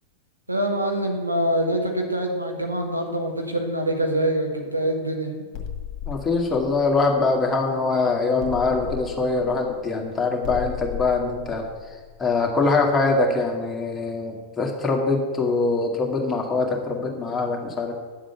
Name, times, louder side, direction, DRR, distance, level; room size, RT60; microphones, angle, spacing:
voice 1, 0.5-5.3, right 1 dB, 85° right, 2 dB, 1.6 m, -25 dB
sound 1, 5.5-7.9 8.4-13.1, left 8 dB, 40° left, 1.9 m, -36 dB
voice 2, 6.1-11.6 12.2-17.9, left 3 dB, 15° left, 0 dB, 2.0 m, -23 dB
10.0 x 7.5 x 6.8 m, 1.5 s
figure-of-eight pair, 90°, 0 cm